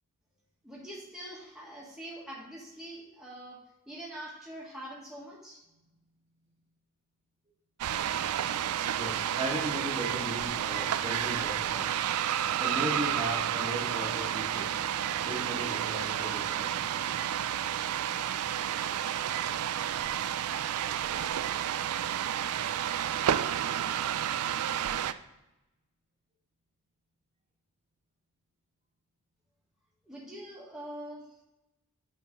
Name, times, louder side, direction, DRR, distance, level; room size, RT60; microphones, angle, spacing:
voice 1, 0.6-3.6 3.9-5.6 30.0-31.3, right 1 dB, 5° right, -5 dB, 1.5 m, -44 dB
sound 1, 7.8-25.1, right 10 dB, 85° right, 0.4 m, -31 dB
voice 2, 9.0-11.9 12.6-14.9 15.2-17.1, right 1 dB, 30° right, -3 dB, 1.5 m, -37 dB
8.5 x 3.8 x 5.2 m, 0.95 s
head